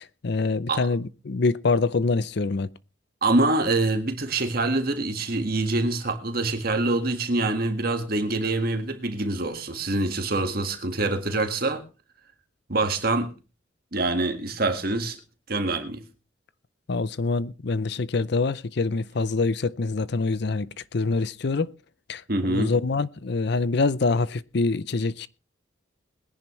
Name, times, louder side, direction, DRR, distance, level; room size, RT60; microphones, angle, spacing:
voice 1, 0.0-2.7 16.9-21.7 22.1-25.3, left 3 dB, 55° left, 0.6 m, -25 dB
voice 2, 3.2-11.8 12.7-13.3 13.9-15.2 15.5-16.0 22.3-22.7, right 2 dB, 50° right, 1.8 m, -25 dB
21.0 x 10.5 x 3.2 m
head